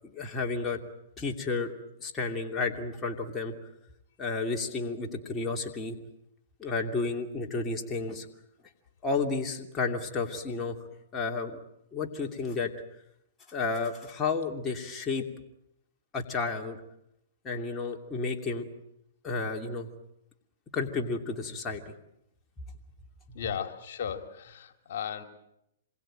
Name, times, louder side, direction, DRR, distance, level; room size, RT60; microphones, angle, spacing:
voice 1, 0.0-0.8 1.2-1.7 2.0-3.5 4.2-6.0 6.6-8.3 9.0-10.8 11.1-11.6 11.9-12.7 13.5-15.2 16.1-16.8 17.4-18.7 19.2-19.9 20.7-21.9, left 4 dB, 20° left, 1 dB, 2.8 m, -31 dB
voice 2, 23.3-25.2, left 8 dB, 60° left, 7 dB, 2.8 m, -36 dB
27.5 x 22.0 x 9.0 m, 0.82 s
hypercardioid pair, 135°, 0 cm